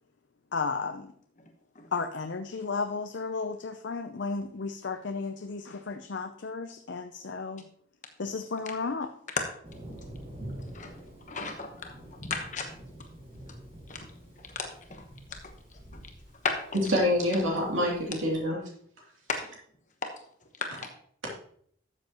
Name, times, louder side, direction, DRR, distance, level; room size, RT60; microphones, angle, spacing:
voice 1, 0.5-1.1 1.9-7.6 8.2-9.1, left 4 dB, 60° left, 7 dB, 0.6 m, -33 dB
Thunder, 9.6-18.4, right 1 dB, 30° right, 4.7 m, -47 dB
voice 2, 11.3-11.9 12.2-12.6 13.9-14.0 14.6-15.0 16.4-16.5, left 4 dB, 40° left, 3 dB, 1.1 m, -34 dB
voice 3, 16.9-18.6, left 1 dB, 80° right, -2 dB, 2.7 m, -26 dB
12.5 x 7.6 x 3.0 m, 0.62 s
head